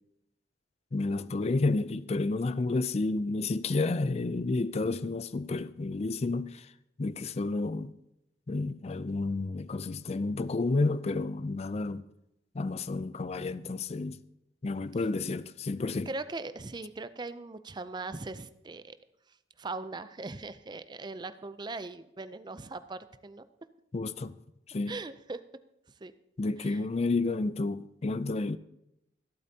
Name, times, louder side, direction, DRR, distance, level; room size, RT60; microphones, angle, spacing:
voice 1, 0.9-6.7 7.0-7.9 8.5-12.1 12.5-14.2 14.6-16.1 23.9-24.4 24.7-25.0 26.4-28.6, left 3 dB, 35° left, 0.4 m, -30 dB
voice 2, 16.1-19.0 19.6-23.5 24.9-25.4 26.0-26.1 26.6-26.8, right 3 dB, 25° right, 0.5 m, -40 dB
26.0 x 8.6 x 2.8 m
head